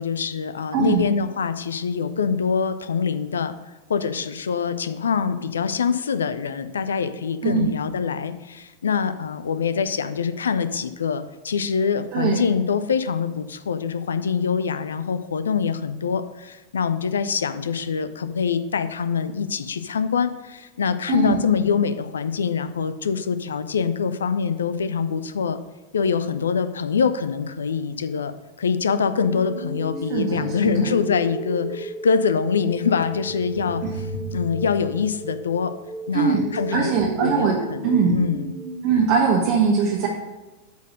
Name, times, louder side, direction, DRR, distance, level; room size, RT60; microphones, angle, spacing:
voice 1, 0.0-3.5 3.9-25.6 25.9-33.8 34.3-35.7 36.1-38.5, left 6 dB, 70° left, 12 dB, 0.5 m, -24 dB
voice 2, 0.7-1.0 7.4-7.7 12.1-12.4 21.1-21.4 30.1-31.0 36.1-36.5 36.7-37.6 37.8-38.2 38.8-40.1, right 5 dB, 45° right, -1 dB, 1.1 m, -21 dB
sound 1, 29.1-39.1, right 1 dB, 75° right, 1.9 m, -34 dB
8.2 x 4.4 x 6.4 m, 1.1 s
figure-of-eight pair, 90°, 0 cm